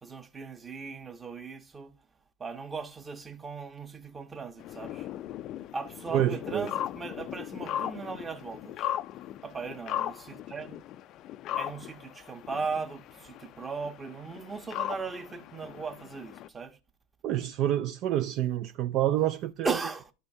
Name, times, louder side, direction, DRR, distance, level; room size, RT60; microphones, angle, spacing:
voice 1, 0.0-1.9 2.4-5.1 5.7-8.9 9.4-10.8 11.5-16.8 19.6-20.1, right 4 dB, 20° right, 0.9 m, -37 dB
sound 1, 4.6-16.5, left 12 dB, 45° left, 0.4 m, -38 dB
voice 2, 6.1-6.7 17.2-19.7, right 12 dB, 50° right, 0.3 m, -28 dB
11.0 x 5.3 x 2.7 m
hypercardioid pair, 85°, 0 cm